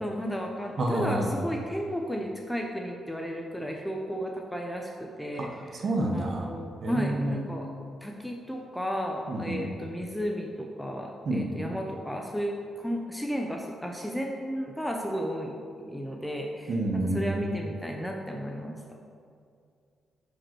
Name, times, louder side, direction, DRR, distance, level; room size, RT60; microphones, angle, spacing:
voice 1, 0.0-5.8 6.1-7.7 8.0-15.6 15.9-16.7 17.1-18.8, equal, 5° left, 1 dB, 0.5 m, -33 dB
voice 2, 0.8-1.3 5.4-6.5 6.8-7.4 9.3-9.6 11.2-11.5 16.7-17.5, right 1 dB, 40° right, 2 dB, 1.0 m, -29 dB
10.5 x 5.1 x 4.5 m, 2.3 s
wide cardioid pair, 175°, 0 cm